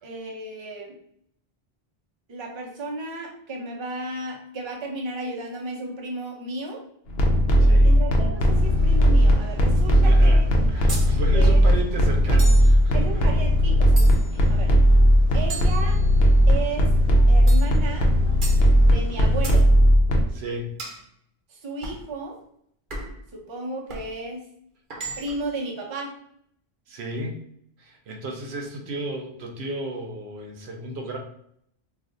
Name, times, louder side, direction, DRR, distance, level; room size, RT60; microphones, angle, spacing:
voice 1, 0.0-1.0 2.3-6.8 7.7-10.4 11.3-11.6 12.9-14.2 14.5-14.7 15.3-16.0 16.5-16.9 17.3-18.1 18.8-19.7 21.5-22.4 23.3-24.4 25.2-26.1, right 2 dB, 35° right, 0 dB, 0.6 m, -34 dB
sound 1, 7.1-20.2, equal, 70° left, 0.8 m, -17 dB
voice 2, 7.6-7.9 9.9-10.4 10.7-13.2 14.3-14.6 20.3-20.8 26.9-27.4 27.8-31.2, right 1 dB, 80° right, 2 dB, 0.9 m, -34 dB
sound 2, 8.5-19.5, right 1 dB, 10° right, 0.9 m, -33 dB
sound 3, 10.9-11.1 12.4-12.7 14.0-14.4 15.5-16.4 17.5-17.7 18.4-18.6 19.4-19.6 20.8-21.0 21.8-22.0 22.9-23.2 23.9-24.1 24.9-25.5, right 2 dB, 55° right, 0.9 m, -36 dB
2.5 x 2.4 x 3.7 m, 0.68 s
omnidirectional pair, 1.1 m